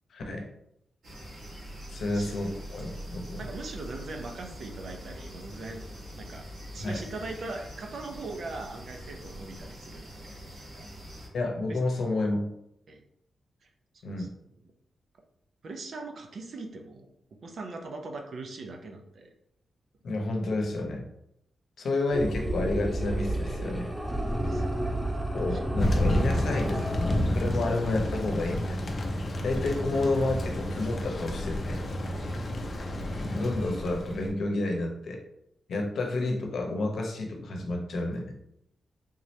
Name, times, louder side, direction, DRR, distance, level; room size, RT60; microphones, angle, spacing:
voice 1, 0.1-0.5 1.9-3.4 6.8-7.0 11.3-12.5 14.0-14.3 20.0-21.0 21.8-23.9 25.3-26.9 27.3-28.8 29.4-31.8 33.1-35.2 35.7-38.3, left 2 dB, 75° left, 1 dB, 0.8 m, -30 dB
sound 1, 1.0-11.3, equal, 75° right, 1.5 m, -43 dB
voice 2, 2.0-2.4 3.4-5.8 6.2-6.5 6.7-10.9 11.7-11.8 12.9-13.0 13.6-13.7 13.9-14.3 15.6-17.1 17.4-19.3 24.3-25.6 32.1-32.4, right 3 dB, 60° right, 3 dB, 0.6 m, -41 dB
sound 2, 22.1-27.2, right 1 dB, 5° right, 0.5 m, -31 dB
Thunder, 25.8-34.3, left 1 dB, 40° left, 0.5 m, -30 dB
3.7 x 2.8 x 3.1 m, 0.78 s
wide cardioid pair, 120°, 0 cm